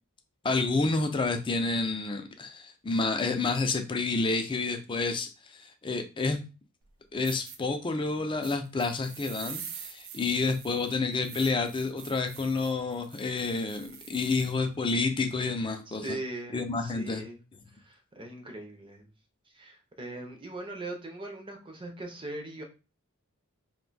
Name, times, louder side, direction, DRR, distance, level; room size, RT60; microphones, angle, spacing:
voice 1, 0.4-6.4 7.1-16.2 16.5-17.2, left 3 dB, 20° left, 6 dB, 0.4 m, -29 dB
sound 1, 6.8-6.9 7.2-7.6 8.4-14.6, right 8 dB, 65° right, 0.5 m, -45 dB
voice 2, 15.9-17.4 17.7-19.1 19.5-22.6, right 2 dB, 25° right, 3 dB, 0.6 m, -40 dB
2.6 x 2.2 x 3.9 m, 0.31 s
head